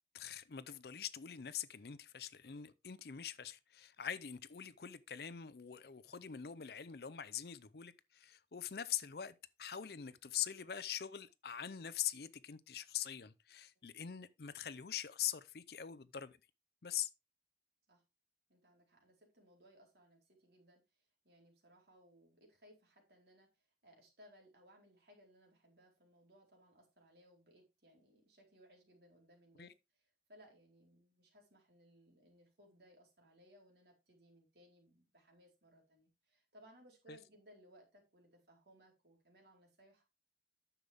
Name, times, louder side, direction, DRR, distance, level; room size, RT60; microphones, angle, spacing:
voice 1, 0.1-16.4 16.8-17.1 29.6-29.7 37.1-37.2, left 10 dB, 55° left, 0.5 m, -43 dB
voice 2, 18.5-40.0, equal, 60° right, 4.1 m, -65 dB
9.9 x 6.9 x 3.4 m
head